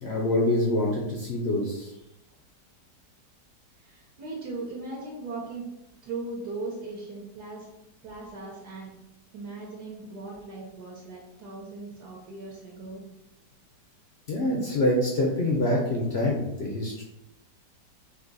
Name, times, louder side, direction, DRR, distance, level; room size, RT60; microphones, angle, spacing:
voice 1, 0.0-1.9 14.3-17.0, left 1 dB, 65° left, -1 dB, 0.6 m, -25 dB
voice 2, 3.8-5.7 6.0-7.7 8.0-8.9 9.3-13.1, right 3 dB, 70° right, -3 dB, 1.3 m, -38 dB
3.9 x 2.8 x 3.9 m, 0.91 s
omnidirectional pair, 1.9 m